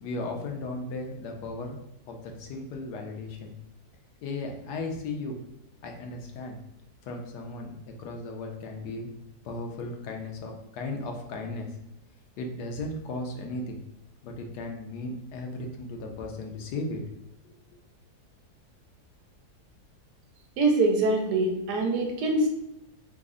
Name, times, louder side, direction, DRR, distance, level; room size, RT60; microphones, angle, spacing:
voice 1, 0.0-1.8 2.1-3.5 4.2-5.4 5.8-6.6 7.0-9.1 9.4-11.7 12.4-13.8 14.2-17.0 17.4-17.5, left 2 dB, 90° left, 2 dB, 1.2 m, -36 dB
voice 2, 20.6-22.5, right 2 dB, 85° right, 3 dB, 1.2 m, -24 dB
3.5 x 2.0 x 3.6 m, 0.81 s
omnidirectional pair, 1.7 m